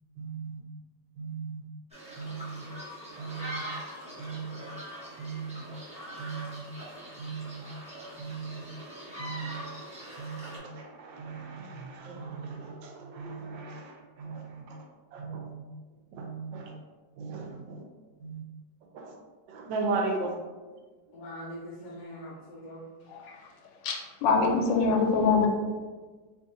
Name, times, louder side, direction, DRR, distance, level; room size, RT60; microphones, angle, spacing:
voice 1, 0.2-0.6 1.2-1.6 2.2-2.6 3.2-3.6 4.2-4.6 5.2-5.6 6.2-6.6 7.2-7.6 8.2-8.6 9.2-9.6 10.2-14.8 15.1-15.6 16.1-16.7 17.2-17.8 18.2-18.4 18.9-19.1 19.5-20.4, right 4 dB, 85° right, 1 dB, 1.4 m, -37 dB
sound 1, 1.9-10.6, equal, 10° right, 0.4 m, -42 dB
voice 2, 21.1-22.9, equal, 70° left, -4 dB, 1.1 m, -42 dB
voice 3, 23.8-25.5, left 4 dB, 85° left, 1 dB, 1.3 m, -24 dB
3.2 x 2.5 x 3.8 m, 1.4 s
omnidirectional pair, 2.0 m